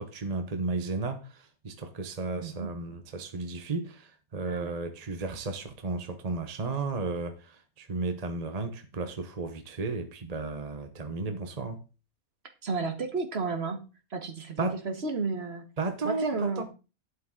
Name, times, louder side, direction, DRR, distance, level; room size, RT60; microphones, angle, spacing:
voice 1, 0.0-11.8 14.6-14.8 15.8-16.6, right 3 dB, 30° right, 0.9 m, -34 dB
voice 2, 2.4-2.7 4.4-4.7 12.6-13.8 14.1-15.7 16.0-16.6, right 4 dB, 45° right, 1.6 m, -32 dB
11.5 x 8.6 x 3.8 m
omnidirectional pair, 1.5 m